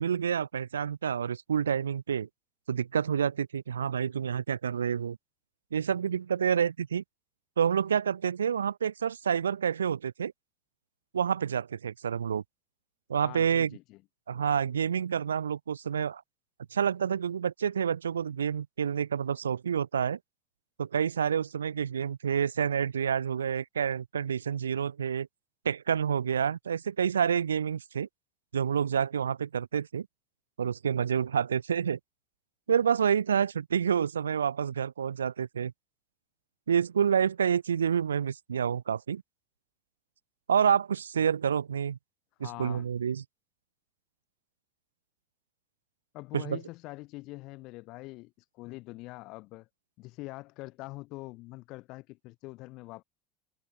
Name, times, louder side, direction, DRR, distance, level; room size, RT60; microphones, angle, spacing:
voice 1, 0.0-2.3 2.7-5.2 5.7-7.0 7.6-10.3 11.1-12.4 13.1-13.7 14.3-16.2 16.7-20.2 20.8-25.3 25.6-28.1 28.5-30.1 30.6-32.0 32.7-35.7 36.7-39.2 40.5-42.0 42.4-43.2 46.3-46.6, right 7 dB, 75° right, 2.1 m, -28 dB
voice 2, 13.2-14.0 42.4-42.9 46.1-49.7 50.0-53.0, left 21 dB, 50° left, 6.3 m, -44 dB
figure-of-eight pair, 70°, 0 cm